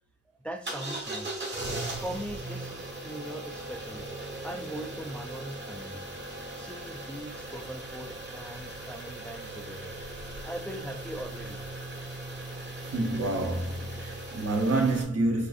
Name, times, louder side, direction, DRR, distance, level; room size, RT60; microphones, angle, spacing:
voice 1, 0.4-4.1 4.4-6.1 6.6-9.9 10.4-11.6, equal, 5° left, 0.4 m, -40 dB
sound 1, 0.6-15.0, right 2 dB, 35° right, 1.1 m, -39 dB
voice 2, 12.8-15.5, right 2 dB, 55° right, 0.9 m, -28 dB
6.3 x 2.5 x 2.5 m
wide cardioid pair, 150°, 30 cm